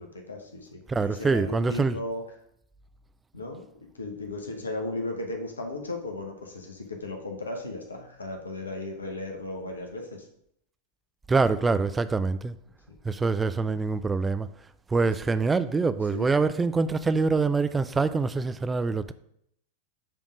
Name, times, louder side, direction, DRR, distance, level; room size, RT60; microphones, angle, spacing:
voice 1, 0.0-2.2 3.3-3.7 3.9-10.2 12.9-13.0 16.1-16.4, left 2 dB, 75° left, 1.0 m, -36 dB
voice 2, 0.9-2.0 11.3-12.5 13.1-14.5 14.9-19.1, right 4 dB, 15° right, 0.3 m, -25 dB
7.2 x 3.5 x 5.1 m
figure-of-eight pair, 90°, 0 cm